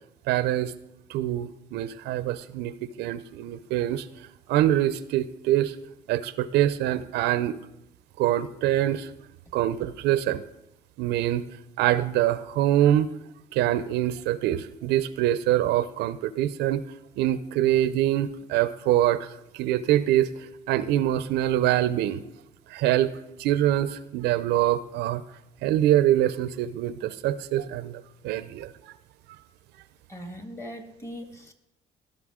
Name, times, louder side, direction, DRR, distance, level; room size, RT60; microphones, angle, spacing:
voice 1, 0.3-0.7 1.1-4.1 4.5-5.7 6.1-7.6 8.2-9.1 9.5-10.4 11.0-11.4 11.8-13.1 13.5-16.8 17.2-19.3 19.5-20.3 20.7-22.2 22.7-23.1 23.4-25.2 25.6-28.7, right 12 dB, 85° right, 14 dB, 0.5 m, -24 dB
voice 2, 30.1-31.5, equal, 15° left, 6 dB, 1.4 m, -40 dB
15.5 x 5.5 x 3.6 m, 0.84 s
cardioid pair, 110°, 17 cm